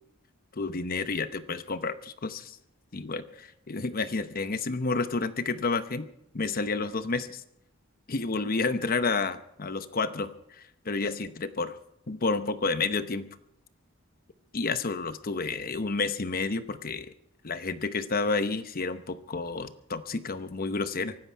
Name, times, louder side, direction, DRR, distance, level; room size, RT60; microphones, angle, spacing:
voice 1, 0.5-2.6 2.9-6.1 6.3-7.4 8.1-11.3 11.6-11.7 12.1-13.3 14.5-17.1 17.4-21.2, left 4 dB, 45° left, 11 dB, 0.9 m, -30 dB
24.5 x 11.5 x 4.6 m, 0.78 s
head